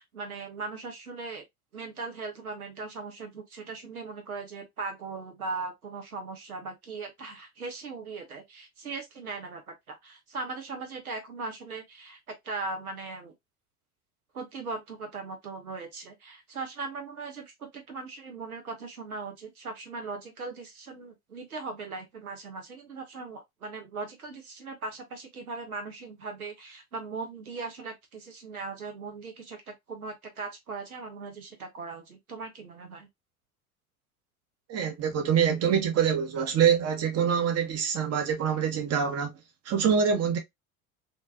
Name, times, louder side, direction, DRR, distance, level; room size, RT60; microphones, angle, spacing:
voice 1, 0.0-1.4 1.7-12.2 12.4-13.3 14.3-33.1, right 4 dB, 90° right, 0.8 m, -39 dB
voice 2, 34.7-39.3 39.7-40.4, right 7 dB, 35° right, 1.0 m, -25 dB
3.6 x 2.6 x 2.6 m
figure-of-eight pair, 70°, 42 cm